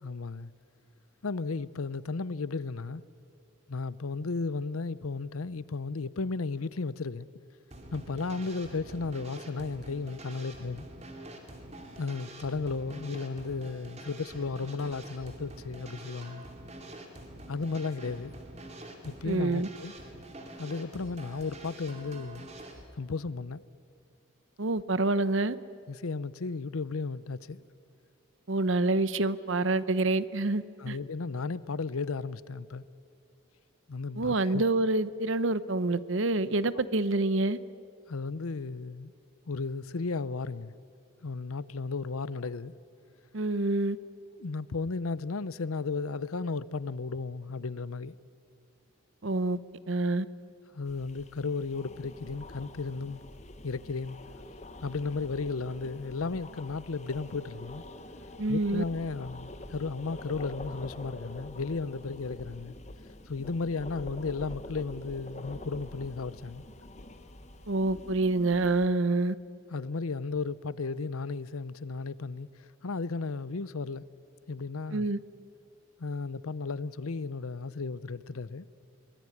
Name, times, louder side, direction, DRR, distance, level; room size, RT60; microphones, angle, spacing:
voice 1, 0.0-0.5 1.2-3.0 3.7-7.3 7.9-10.9 12.0-16.4 17.5-18.3 19.0-19.9 20.6-22.5 23.0-23.6 25.9-27.6 30.8-32.8 33.9-34.6 36.7-36.8 38.1-39.1 39.5-40.7 41.2-42.7 44.3-48.1 50.7-53.2 53.6-54.2 54.8-57.8 58.5-62.7 63.3-66.6 69.7-74.0 74.5-75.1 76.0-78.7, left 4 dB, 90° left, 0.7 m, -34 dB
sound 1, 7.7-22.8, right 1 dB, 30° right, 2.6 m, -46 dB
voice 2, 19.2-19.7 24.6-25.6 28.5-31.0 34.2-37.6 43.3-44.0 49.2-49.6 49.9-50.3 58.4-58.8 67.7-69.3 74.9-75.2, right 2 dB, 65° right, 0.8 m, -27 dB
sound 2, 50.9-68.9, left 1 dB, 30° left, 1.2 m, -46 dB
23.5 x 19.5 x 9.9 m
head